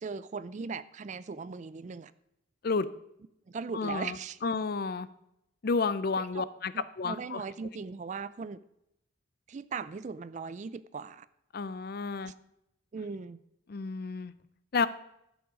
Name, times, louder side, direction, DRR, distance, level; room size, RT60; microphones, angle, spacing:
voice 1, 0.0-2.1 3.5-4.4 6.3-6.5 6.7-8.6 9.5-11.3 12.2-12.3 12.9-13.4, right 5 dB, 40° right, 16 dB, 0.3 m, -39 dB
voice 2, 3.7-4.2 4.4-5.1 5.6-6.7 7.0-7.4 11.5-12.3 13.7-14.3 14.7-14.9, left 4 dB, 50° left, 15 dB, 0.5 m, -31 dB
12.0 x 7.0 x 4.9 m, 0.81 s
head